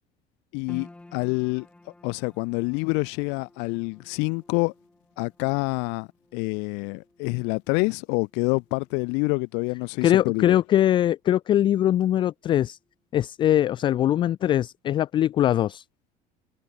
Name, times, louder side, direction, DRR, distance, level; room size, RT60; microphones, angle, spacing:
voice 1, 0.5-1.7 2.0-4.7 5.2-10.6, left 33 dB, 70° left, 0.9 m, -27 dB
sound 1, 0.7-13.1 13.3-14.3 14.7-14.8, left 2 dB, 5° left, 5.3 m, -54 dB
voice 2, 10.0-12.8 13.1-15.8, left 11 dB, 25° left, 0.4 m, -22 dB
cardioid pair, 170°, 19 cm